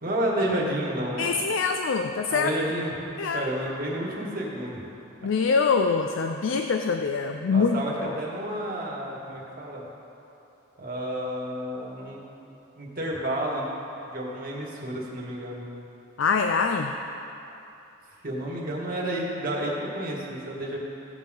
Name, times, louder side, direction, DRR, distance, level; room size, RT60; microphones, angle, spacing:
voice 1, 0.0-1.3 2.3-2.9 3.3-4.9 7.5-9.8 10.8-12.2 12.8-13.7 14.0-15.7 18.2-20.8, right 1 dB, 45° right, -4 dB, 2.1 m, -30 dB
voice 2, 1.2-2.5 3.2-3.5 5.2-7.8 16.2-16.9, left 5 dB, 70° left, 6 dB, 0.4 m, -24 dB
16.5 x 7.3 x 3.8 m, 3.0 s
head